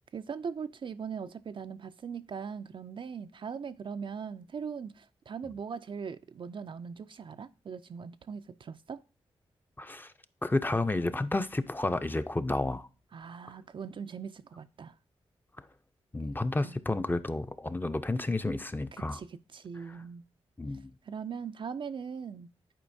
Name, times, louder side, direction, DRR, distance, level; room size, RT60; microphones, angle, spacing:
voice 1, 0.1-9.0 13.1-14.9 16.6-16.8 18.9-20.2 21.0-22.5, right 6 dB, 50° right, 0.3 m, -40 dB
voice 2, 9.8-10.1 10.4-12.9 16.1-19.2 19.9-20.0 20.6-20.9, left 2 dB, 15° left, 0.5 m, -31 dB
10.0 x 4.3 x 2.6 m
cardioid pair, 50°, 11 cm